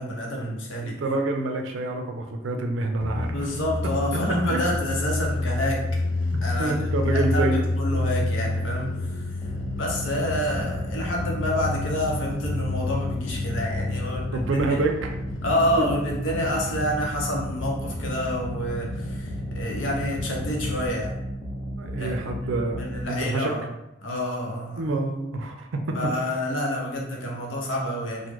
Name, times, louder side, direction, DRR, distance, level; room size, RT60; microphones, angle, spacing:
voice 1, 0.0-1.0 3.3-5.9 6.4-14.8 15.4-21.1 22.0-22.1 22.7-23.7 24.0-24.8 25.9-28.3, equal, 85° left, -1 dB, 0.8 m, -28 dB
voice 2, 0.8-3.4 4.1-4.2 4.5-4.6 6.6-7.6 14.3-15.1 15.8-15.9 21.8-22.8 23.1-23.5 24.8-26.1, right 2 dB, 80° right, 4 dB, 0.4 m, -27 dB
sound 1, 3.0-20.9, left 2 dB, 65° left, 0.4 m, -30 dB
sound 2, 9.4-23.0, equal, ahead, 0.6 m, -34 dB
3.0 x 2.1 x 3.4 m, 0.89 s
head